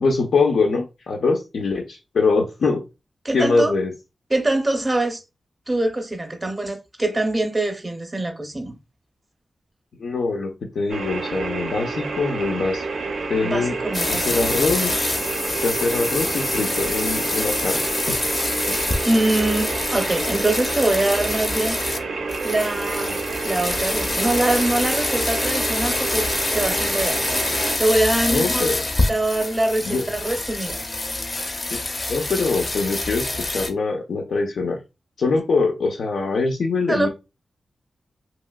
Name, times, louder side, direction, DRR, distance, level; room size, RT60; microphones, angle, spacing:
voice 1, 0.0-2.8 3.3-3.9 10.0-12.9 13.3-13.8 14.1-15.2 15.5-17.8 18.1-18.2 18.7-18.8 28.3-28.8 29.8-30.1 31.7-31.8 32.1-34.8 35.2-37.1, left 3 dB, 90° left, 0.5 m, -23 dB
voice 2, 3.2-3.7 4.3-5.2 5.7-8.8 13.4-14.5 19.0-21.8 22.4-23.2 23.4-26.3 26.5-27.2 27.8-28.7 29.1-30.8 36.9-37.1, right 2 dB, 20° right, 0.5 m, -23 dB
sound 1, 10.9-27.8, right 3 dB, 80° right, 0.4 m, -29 dB
sound 2, 13.9-22.0 22.3-33.7, left 2 dB, 30° left, 0.4 m, -26 dB
2.9 x 2.8 x 2.2 m
wide cardioid pair, 165°, 0 cm